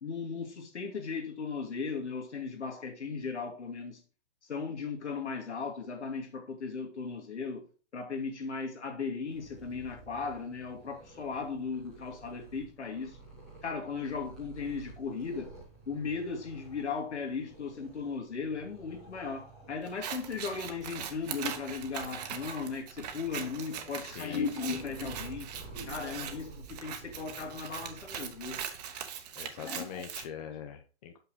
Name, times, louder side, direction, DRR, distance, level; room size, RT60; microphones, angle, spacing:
voice 1, 0.0-4.0 4.4-7.7 7.9-13.2 13.6-15.6 15.9-25.5 25.9-28.6 29.6-30.0, left 5 dB, 75° left, 2.4 m, -37 dB
Purr, 9.2-28.6, right 3 dB, ahead, 0.3 m, -51 dB
Scissors, 19.9-30.2, right 8 dB, 35° right, 1.0 m, -41 dB
voice 2, 24.0-24.8 29.4-31.2, left 8 dB, 35° left, 0.8 m, -43 dB
5.9 x 5.6 x 4.8 m
hypercardioid pair, 140°, 34 cm